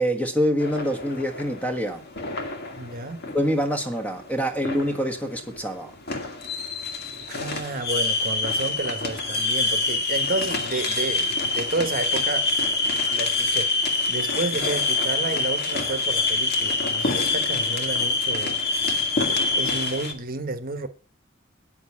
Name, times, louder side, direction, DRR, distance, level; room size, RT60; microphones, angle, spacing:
voice 1, 0.0-2.0 3.3-5.9, equal, 5° left, 1.4 m, -25 dB
sound 1, 0.6-20.1, left 3 dB, 55° left, 1.8 m, -26 dB
voice 2, 2.8-3.2 7.3-12.5 13.1-18.6 19.6-20.9, right 3 dB, 45° right, 1.2 m, -31 dB
9.1 x 6.5 x 8.4 m
head